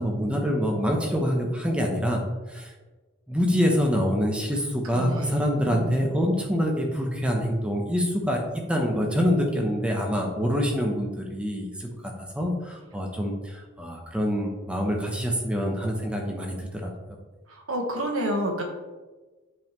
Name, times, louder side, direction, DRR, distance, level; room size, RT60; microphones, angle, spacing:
voice 1, 0.0-2.2 2.5-2.7 3.3-11.9 12.3-16.9, equal, 5° right, 1 dB, 0.8 m, -26 dB
voice 2, 4.8-6.1 17.5-18.6, right 1 dB, 80° right, 2 dB, 1.2 m, -30 dB
7.7 x 5.4 x 3.1 m, 1.3 s
head